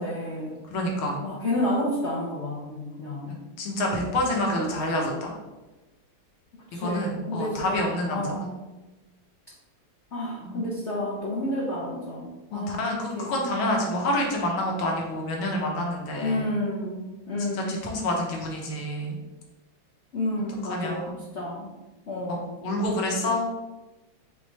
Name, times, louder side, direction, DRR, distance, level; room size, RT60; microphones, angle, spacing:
voice 1, 0.0-0.6 1.2-3.3 6.7-8.6 10.1-12.8 13.1-13.4 16.1-17.8 20.1-21.1 21.3-21.7 22.1-22.6, left 1 dB, 60° left, -5 dB, 0.7 m, -30 dB
voice 2, 0.7-1.2 3.3-5.3 6.7-8.3 10.4-10.6 12.5-16.5 17.5-19.2 20.6-21.2 22.3-23.5, left 1 dB, 85° left, 0 dB, 1.8 m, -28 dB
3.7 x 3.6 x 4.0 m, 1.1 s
omnidirectional pair, 2.3 m